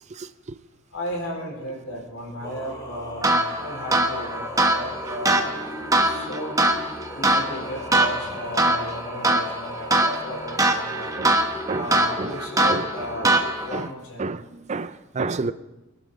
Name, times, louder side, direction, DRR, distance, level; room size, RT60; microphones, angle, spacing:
voice 1, 0.1-0.6 11.2-11.4 11.7-12.4 12.7-12.8 13.2-13.4 13.7-13.9 14.2-15.5, right 3 dB, 35° right, 0.5 m, -30 dB
voice 2, 0.9-5.6 6.0-6.6 7.1-11.1 11.7-14.3, equal, 90° left, 4.6 m, -35 dB
Singing, 2.4-13.7, left 1 dB, 15° left, 2.7 m, -37 dB
sound 1, 3.2-13.9, right 2 dB, 15° right, 1.2 m, -23 dB
25.5 x 12.0 x 3.9 m
head